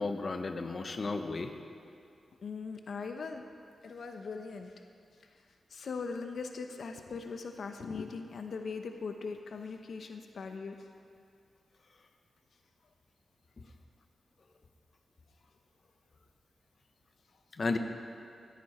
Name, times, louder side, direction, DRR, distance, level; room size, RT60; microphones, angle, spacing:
voice 1, 0.0-1.5 17.5-17.8, left 3 dB, 45° left, 6 dB, 0.9 m, -33 dB
voice 2, 2.4-3.4 3.8-4.8 5.2-5.4 5.7-10.9 13.6-13.7, left 4 dB, 70° left, 5 dB, 0.8 m, -40 dB
16.5 x 13.5 x 4.3 m, 2.4 s
wide cardioid pair, 115°, 0 cm